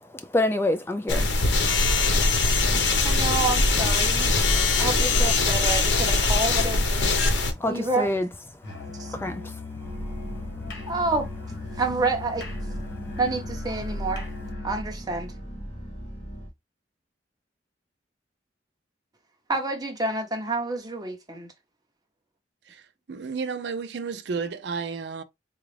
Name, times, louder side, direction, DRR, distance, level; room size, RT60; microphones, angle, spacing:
voice 1, 0.0-1.5 2.2-2.5 7.4-8.3 8.5-8.8 9.1-9.6 10.0-10.6, left 1 dB, 15° left, 0.3 m, -29 dB
sound 1, 1.1-7.5, left 3 dB, 90° left, 0.9 m, -22 dB
voice 2, 3.0-4.3 4.8-7.1 7.7-8.1 9.0-9.1 10.9-11.3 11.8-12.5 13.2-14.3 14.6-15.3 19.5-21.5, right 3 dB, 20° right, 0.9 m, -28 dB
Musical instrument, 8.6-14.9, left 4 dB, 70° left, 1.4 m, -39 dB
sound 2, 9.8-16.5, equal, 35° left, 1.6 m, -37 dB
voice 3, 22.7-25.2, right 5 dB, 70° right, 0.5 m, -32 dB
3.9 x 2.4 x 3.2 m
head